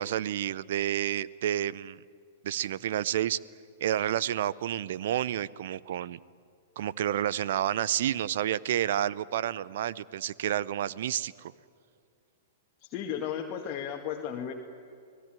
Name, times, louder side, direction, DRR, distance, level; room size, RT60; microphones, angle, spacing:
voice 1, 0.0-2.0 2.4-3.4 3.8-6.2 6.8-11.5, right 11 dB, 60° right, 21 dB, 0.6 m, -30 dB
voice 2, 12.8-14.5, left 9 dB, 40° left, 0 dB, 1.9 m, -34 dB
30.0 x 18.5 x 9.1 m, 2.4 s
hypercardioid pair, 110°, 0 cm